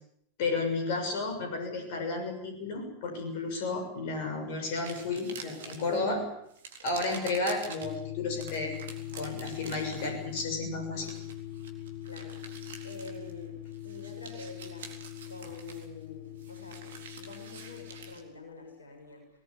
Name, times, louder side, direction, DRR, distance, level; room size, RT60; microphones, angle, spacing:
voice 1, 0.4-6.3 6.8-8.7 9.1-11.1, left 3 dB, 50° left, 4 dB, 6.7 m, -32 dB
sound 1, 4.7-6.0 6.5-8.0 8.4-13.5 13.7-18.2, right 5 dB, 60° right, 3.9 m, -47 dB
sound 2, 7.8-18.2, left 13 dB, 25° left, 2.1 m, -42 dB
voice 2, 12.0-14.9 15.3-19.2, left 2 dB, 75° left, 3 dB, 6.5 m, -47 dB
23.5 x 20.0 x 8.6 m, 0.71 s
figure-of-eight pair, 90°, 0 cm